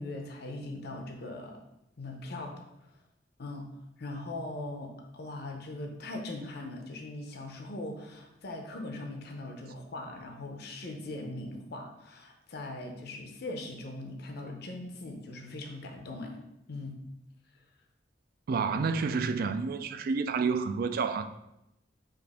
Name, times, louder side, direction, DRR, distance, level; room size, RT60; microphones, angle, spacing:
voice 1, 0.0-1.6 2.0-2.9 3.4-3.7 4.0-16.4 16.7-17.0, left 2 dB, 60° left, 0.6 m, -40 dB
voice 2, 18.5-21.2, right 5 dB, 55° right, 0.3 m, -29 dB
5.1 x 2.5 x 4.1 m
head